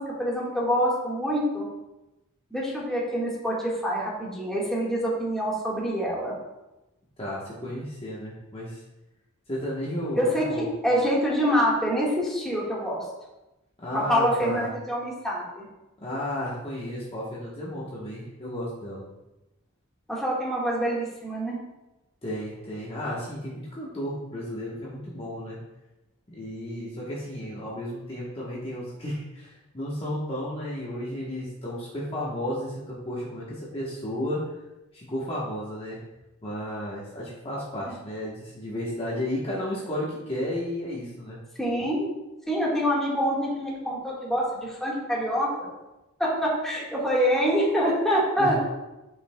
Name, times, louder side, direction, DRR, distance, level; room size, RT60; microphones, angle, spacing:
voice 1, 0.0-1.6 2.5-6.3 10.1-13.0 13.9-15.7 20.1-21.6 41.6-42.1 42.5-45.7 46.2-48.6, equal, ahead, -6 dB, 1.5 m, -26 dB
voice 2, 7.2-8.8 9.5-10.7 13.8-14.7 16.0-19.0 22.2-25.6 26.3-34.4 34.9-36.0 36.4-41.4 48.4-48.6, left 1 dB, 25° left, -6 dB, 1.1 m, -33 dB
9.6 x 5.5 x 2.2 m, 1.0 s
head